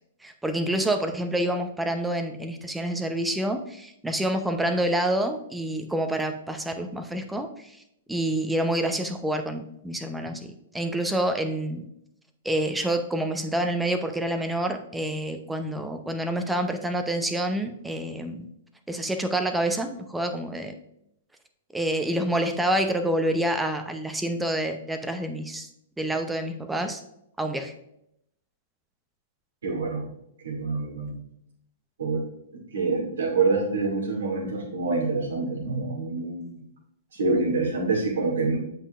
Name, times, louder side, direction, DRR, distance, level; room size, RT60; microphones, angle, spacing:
voice 1, 0.2-7.7 8.1-11.8 12.4-18.5 18.9-20.7 21.7-25.7 26.0-27.0 27.4-27.7, right 1 dB, 5° right, 6 dB, 0.7 m, -27 dB
voice 2, 29.6-30.0 30.4-31.2 32.0-32.2 32.5-36.6 37.1-38.6, right 3 dB, 75° right, -1 dB, 2.4 m, -26 dB
8.1 x 5.5 x 2.5 m, 0.77 s
hypercardioid pair, 115°, 0 cm